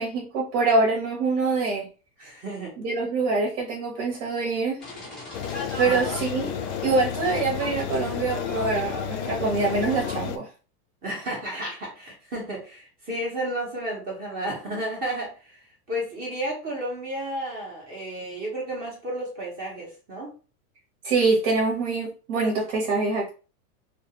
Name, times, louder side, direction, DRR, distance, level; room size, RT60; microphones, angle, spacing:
voice 1, 0.0-1.9 2.8-4.8 5.8-6.5 6.8-10.5 21.0-23.3, right 3 dB, 65° right, -1 dB, 1.1 m, -24 dB
voice 2, 2.2-2.7 5.8-6.5 11.0-20.3, right 1 dB, 20° right, -2 dB, 0.7 m, -32 dB
sound 1, 4.8-10.2, left 2 dB, ahead, 0.3 m, -38 dB
sound 2, 5.3-10.4, left 9 dB, 75° left, 0.5 m, -32 dB
2.4 x 2.4 x 2.8 m, 0.35 s
supercardioid pair, 155°, 44 cm